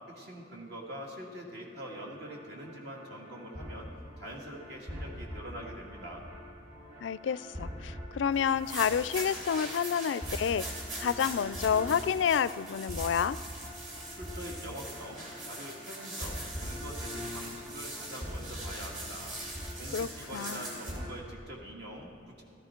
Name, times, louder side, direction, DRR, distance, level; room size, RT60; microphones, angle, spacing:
voice 1, 0.1-3.9 4.2-6.2 14.1-22.4, equal, 60° right, -1 dB, 2.0 m, -44 dB
sound 1, 1.7-21.1, equal, 25° right, 2.6 m, -44 dB
voice 2, 7.0-10.6 11.0-13.4 19.9-20.6, left 7 dB, 75° left, 17 dB, 0.3 m, -29 dB
sound 2, 8.5-21.0, right 2 dB, 45° right, 2.9 m, -42 dB
14.5 x 13.5 x 4.4 m, 2.8 s
head